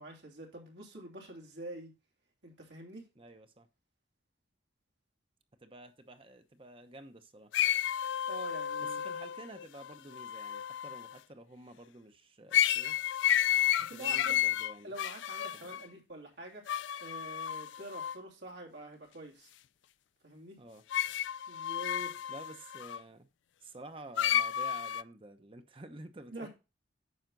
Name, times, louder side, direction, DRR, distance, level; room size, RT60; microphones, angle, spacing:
voice 1, 0.0-1.9 2.4-3.1 8.3-9.0 13.8-14.5 14.8-16.6 17.0-19.5 20.2-20.6 21.5-22.2 26.3-26.5, right 1 dB, 80° right, 3.0 m, -46 dB
voice 2, 3.2-3.7 5.6-7.5 8.8-13.0 13.9-14.9 15.5-15.8 20.6-20.8 22.3-23.3 23.6-26.5, right 2 dB, 30° right, 0.9 m, -50 dB
sound 1, 7.5-11.1 12.5-15.8 16.7-18.1 20.9-23.0 24.2-25.0, left 11 dB, 90° left, 0.4 m, -31 dB
9.3 x 6.4 x 3.9 m
head